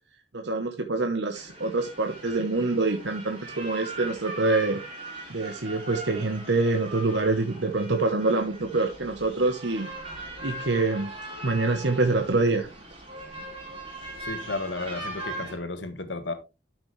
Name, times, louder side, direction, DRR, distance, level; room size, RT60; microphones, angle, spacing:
voice 1, 0.3-4.8 5.3-9.9 10.4-11.1 11.4-12.7, right 3 dB, 65° right, 1.0 m, -25 dB
sound 1, 1.3-15.6, right 2 dB, 30° right, 3.7 m, -40 dB
voice 2, 14.2-16.3, left 3 dB, 75° left, 1.6 m, -33 dB
12.0 x 6.0 x 3.2 m
head